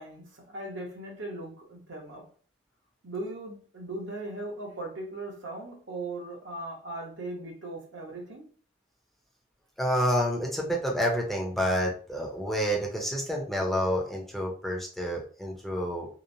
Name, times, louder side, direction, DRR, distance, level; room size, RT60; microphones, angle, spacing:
voice 1, 0.0-2.3 3.0-8.5, right 2 dB, 70° right, 0.8 m, -38 dB
voice 2, 9.8-16.1, equal, ahead, 0.5 m, -28 dB
2.9 x 2.0 x 2.6 m
head